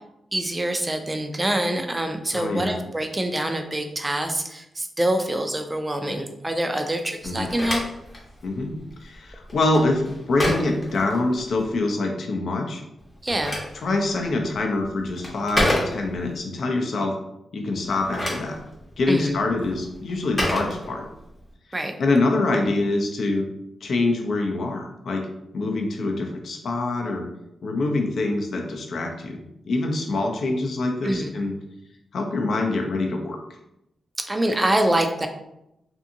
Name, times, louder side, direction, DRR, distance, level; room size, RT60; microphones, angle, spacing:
voice 1, 0.3-7.8 13.2-13.6 19.1-19.4 21.7-22.0 31.0-31.3 34.3-35.3, right 1 dB, 15° right, 5 dB, 0.3 m, -25 dB
voice 2, 2.3-2.8 7.2-7.5 8.4-8.7 9.0-12.8 13.8-17.2 17.5-18.5 19.0-21.0 22.0-23.4 23.8-25.3 25.5-27.3 27.6-31.5 32.1-33.4, left 2 dB, 65° left, 2 dB, 0.5 m, -25 dB
Telephone, 7.2-11.7 13.0-16.4 17.8-21.4, left 1 dB, 20° left, 0.7 m, -30 dB
2.6 x 2.6 x 2.6 m, 0.84 s
wide cardioid pair, 130°, 0 cm